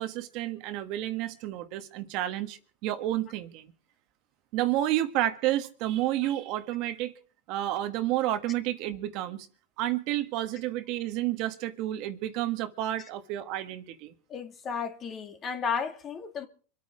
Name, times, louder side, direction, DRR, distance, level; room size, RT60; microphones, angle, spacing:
voice 1, 0.0-3.7 4.5-7.1 7.5-9.5 9.8-14.1, right 14 dB, 50° right, 1.5 m, -30 dB
voice 2, 14.3-16.5, left 6 dB, 30° left, 2.2 m, -33 dB
25.5 x 8.7 x 5.0 m
supercardioid pair, 125°, 0 cm